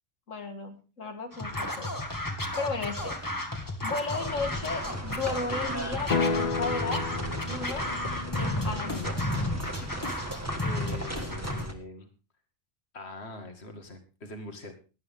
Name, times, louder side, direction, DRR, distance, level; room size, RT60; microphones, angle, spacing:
voice 1, 0.3-1.9 2.6-3.2 3.8-7.2 7.5-7.9 8.4-9.2, left 3 dB, 90° left, 4 dB, 2.2 m, -34 dB
Scratching (performance technique), 1.3-11.7, left 1 dB, 15° left, 1.8 m, -33 dB
sound 1, 4.1-11.7, right 1 dB, 10° right, 1.6 m, -38 dB
sound 2, 6.1-10.2, left 5 dB, 40° left, 0.7 m, -33 dB
voice 2, 10.6-12.1 12.9-14.7, left 2 dB, 55° left, 5 dB, 2.4 m, -42 dB
17.5 x 11.0 x 3.7 m, 0.32 s
omnidirectional pair, 1.3 m